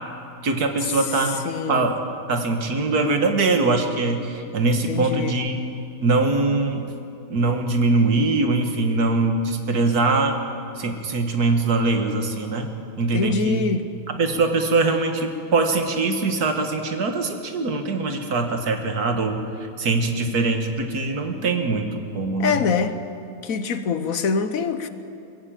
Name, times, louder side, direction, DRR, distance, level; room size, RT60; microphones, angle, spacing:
voice 1, 0.4-1.4 1.7-2.0 2.3-5.6 6.0-6.9 7.3-10.4 10.8-12.7 13.0-13.6 14.2-19.4 19.8-22.6, right 3 dB, 85° right, 5 dB, 2.1 m, -22 dB
voice 2, 1.4-1.9 4.8-5.4 13.1-13.9 22.4-23.0 23.4-24.9, left 5 dB, 65° left, 10 dB, 1.4 m, -24 dB
22.5 x 14.5 x 9.0 m, 2.6 s
omnidirectional pair, 1.6 m